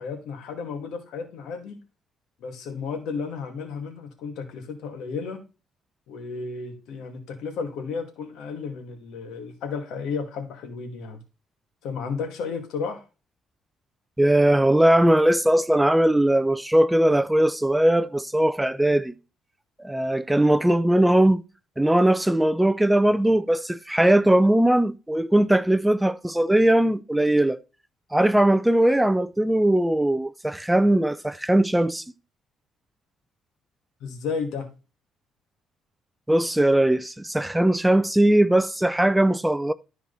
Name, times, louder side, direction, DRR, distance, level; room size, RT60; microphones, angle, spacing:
voice 1, 0.0-1.8 2.4-5.4 6.1-11.2 11.8-13.0 34.0-34.7, left 5 dB, 80° left, 2.3 m, -33 dB
voice 2, 14.2-19.1 19.8-21.4 21.8-27.6 28.1-32.0 36.3-39.7, right 1 dB, 5° right, 0.5 m, -20 dB
13.0 x 4.6 x 4.1 m
cardioid pair, 105°, 0 cm